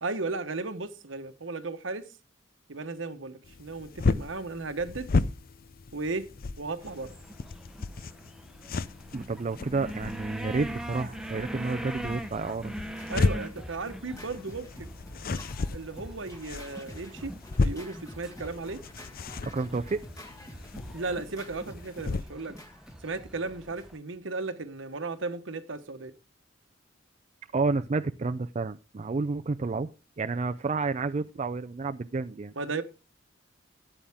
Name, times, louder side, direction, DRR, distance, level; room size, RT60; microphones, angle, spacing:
voice 1, 0.0-2.1 2.7-5.1 5.9-6.3 6.6-7.1 13.1-14.9 15.7-17.3 17.6-18.8 20.9-22.6 23.0-26.1 32.6-32.8, right 3 dB, 80° right, 1.2 m, -35 dB
sound 1, 3.4-22.2, left 3 dB, 50° left, 0.5 m, -34 dB
sound 2, 6.8-24.0, right 1 dB, 5° right, 0.9 m, -43 dB
voice 2, 9.1-12.7 19.4-20.0 27.5-29.9 30.2-32.5, right 3 dB, 35° right, 0.4 m, -30 dB
Scratching (performance technique), 12.7-24.2, equal, 20° left, 1.8 m, -48 dB
13.0 x 9.0 x 3.5 m
head